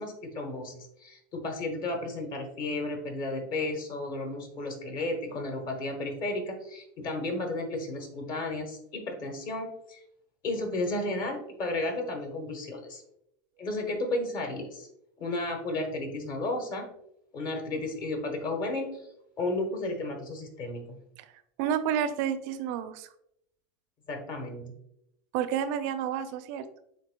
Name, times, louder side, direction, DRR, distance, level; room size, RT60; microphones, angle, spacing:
voice 1, 0.0-10.0 10.4-13.0 13.6-14.9 15.2-16.9 17.3-19.0 19.4-21.0 24.1-24.8, left 2 dB, 45° left, 3 dB, 1.2 m, -33 dB
voice 2, 21.6-23.1 25.3-26.7, right 9 dB, 60° right, 11 dB, 0.4 m, -30 dB
7.3 x 2.6 x 2.2 m, 0.75 s
supercardioid pair, 120°, 11 cm